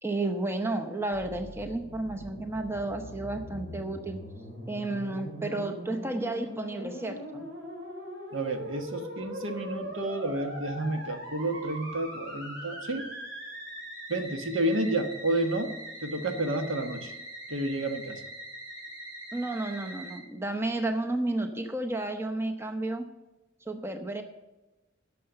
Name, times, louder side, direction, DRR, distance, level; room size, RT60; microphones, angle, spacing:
voice 1, 0.0-4.2 4.7-7.4 19.3-23.1 23.7-24.2, right 2 dB, 10° right, 5 dB, 0.7 m, -32 dB
Musical instrument, 1.1-20.2, equal, 60° right, 3.7 m, -42 dB
voice 2, 8.3-13.1 14.1-15.7 16.0-17.1 17.5-18.2, right 2 dB, 75° right, 6 dB, 1.2 m, -30 dB
11.5 x 6.6 x 6.8 m, 1.1 s
head